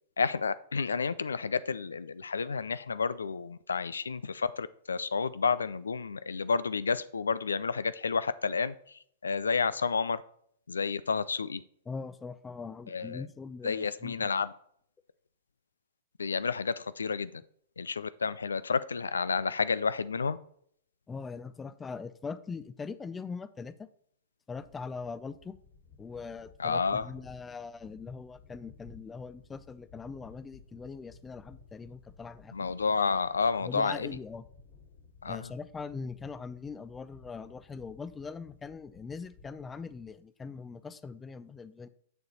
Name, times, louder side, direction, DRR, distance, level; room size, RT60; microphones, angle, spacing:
voice 1, 0.2-8.7 9.2-10.2 10.7-11.6 12.9-13.2 13.6-14.5 16.2-17.4 17.8-20.4 26.6-27.1 32.5-34.2 35.2-35.5, left 5 dB, 90° left, 16 dB, 0.3 m, -30 dB
voice 2, 11.9-14.3 21.1-23.9 24.5-25.5 26.0-32.5 33.6-34.4 35.2-41.9, left 5 dB, 15° left, 14 dB, 0.4 m, -41 dB
sound 1, 25.1-40.1, left 5 dB, 65° left, 2.5 m, -57 dB
6.8 x 6.4 x 4.0 m, 0.66 s
hypercardioid pair, 115°, 0 cm